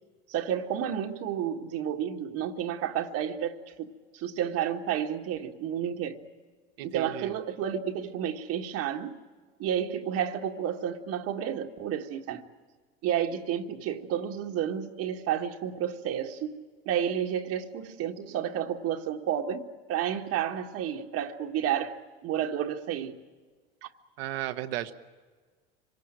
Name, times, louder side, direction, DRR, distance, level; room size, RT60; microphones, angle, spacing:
voice 1, 0.3-6.2 6.8-9.2 9.6-12.5 13.0-23.2, right 9 dB, 55° right, 1.7 m, -31 dB
voice 2, 6.8-7.3 24.2-24.9, right 14 dB, 75° right, 1.4 m, -34 dB
25.5 x 18.5 x 8.9 m
hypercardioid pair, 90°, 30 cm